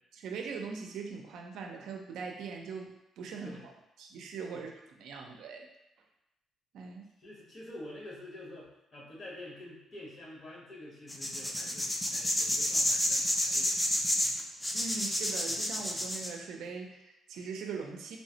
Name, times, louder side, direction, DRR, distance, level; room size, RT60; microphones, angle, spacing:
voice 1, 0.1-3.7 4.0-5.7 6.7-7.1 14.7-18.2, right 5 dB, 80° right, 2 dB, 0.4 m, -41 dB
voice 2, 7.2-13.8, left 1 dB, 50° left, -5 dB, 1.1 m, -47 dB
sound 1, 11.1-16.3, left 1 dB, 10° left, 0.4 m, -30 dB
3.1 x 2.0 x 2.7 m, 0.88 s
cardioid pair, 90°, 0 cm